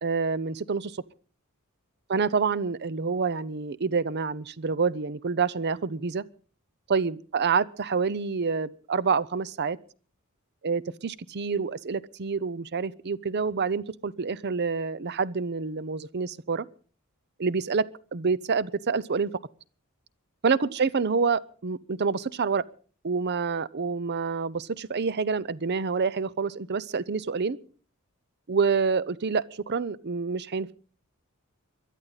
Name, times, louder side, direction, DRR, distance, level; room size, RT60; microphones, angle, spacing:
voice 1, 0.0-1.0 2.1-6.2 6.9-9.8 10.6-16.7 17.4-19.3 20.4-22.6 23.0-27.6 28.5-30.7, right 5 dB, 50° right, 20 dB, 0.6 m, -27 dB
22.0 x 12.5 x 4.0 m, 0.40 s
head